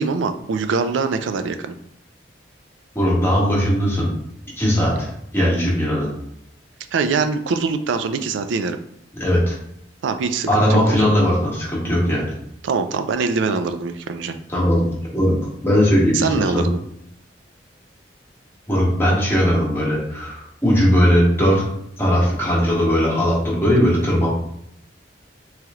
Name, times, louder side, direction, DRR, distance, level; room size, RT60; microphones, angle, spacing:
voice 1, 0.0-1.8 6.9-8.8 10.0-11.1 12.6-14.4 16.1-16.8, right 4 dB, 90° right, 9 dB, 0.4 m, -23 dB
voice 2, 2.9-4.1 4.6-6.1 9.1-9.6 10.5-12.3 14.5-14.9 15.1-15.4 15.6-16.6 18.7-21.7 22.0-24.3, equal, 15° left, -6 dB, 1.3 m, -18 dB
3.2 x 3.0 x 3.6 m, 0.72 s
head